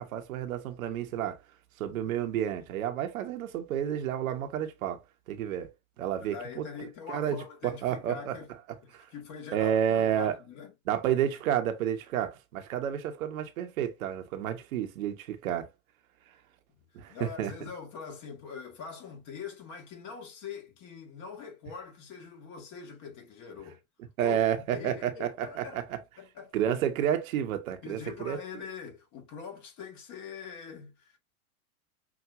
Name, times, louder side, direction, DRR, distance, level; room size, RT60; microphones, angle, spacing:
voice 1, 0.0-1.4 1.8-5.0 5.3-5.7 6.0-6.7 7.1-8.4 8.9-9.1 9.5-10.4 10.9-15.7 16.9-17.5 24.2-25.8 26.5-28.4, right 10 dB, 65° right, 1.0 m, -30 dB
voice 2, 6.2-8.5 8.8-10.7 11.1-11.2 16.7-16.8 17.1-23.8 24.2-25.8 26.2-26.6 27.8-31.2, left 6 dB, 40° left, 1.9 m, -43 dB
6.0 x 2.6 x 2.5 m
hypercardioid pair, 100°, 44 cm